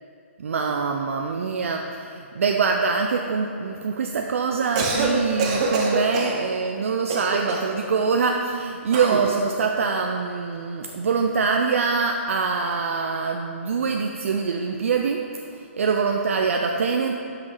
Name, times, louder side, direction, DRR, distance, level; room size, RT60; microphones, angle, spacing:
voice 1, 0.4-17.1, right 5 dB, 75° right, 3 dB, 0.6 m, -24 dB
Cough, 4.6-5.1 5.4-6.4 7.1-7.8 8.9-9.3, right 3 dB, 30° right, 0.9 m, -25 dB
8.1 x 6.0 x 5.5 m, 2.4 s
hypercardioid pair, 170°, 7 cm